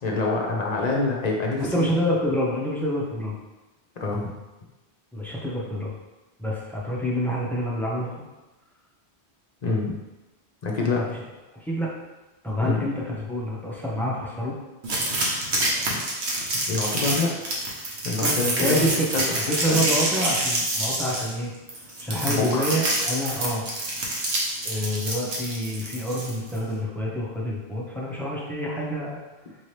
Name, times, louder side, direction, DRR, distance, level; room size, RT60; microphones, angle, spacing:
voice 1, 0.0-1.9 4.0-4.3 9.6-10.0 10.6-11.0 12.6-12.8 15.9-16.0 16.7-17.3 18.0-19.4 19.7-19.9 22.2-22.7, left 3 dB, 45° left, -1 dB, 0.7 m, -26 dB
voice 2, 1.6-3.3 5.1-5.9 6.4-8.1 10.9-11.2 11.5-11.9 12.4-14.6 18.2-21.5 22.0-23.7 24.6-29.2, equal, ahead, -4 dB, 0.6 m, -27 dB
sound 1, 14.8-26.6, right 1 dB, 75° right, 1.1 m, -27 dB
4.4 x 2.8 x 3.2 m, 1.1 s
omnidirectional pair, 1.1 m